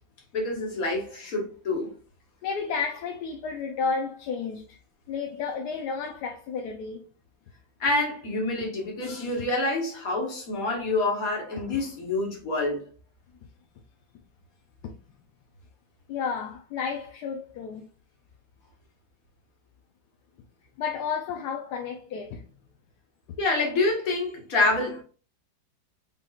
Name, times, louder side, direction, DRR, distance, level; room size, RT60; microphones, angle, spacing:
voice 1, 0.3-1.9 7.8-12.8 23.4-25.0, left 2 dB, 50° left, 1.8 m, -27 dB
voice 2, 2.4-4.8 5.1-7.1 16.1-17.9 20.8-22.4, left 5 dB, 70° left, 1.1 m, -32 dB
5.7 x 3.6 x 2.4 m
omnidirectional pair, 2.0 m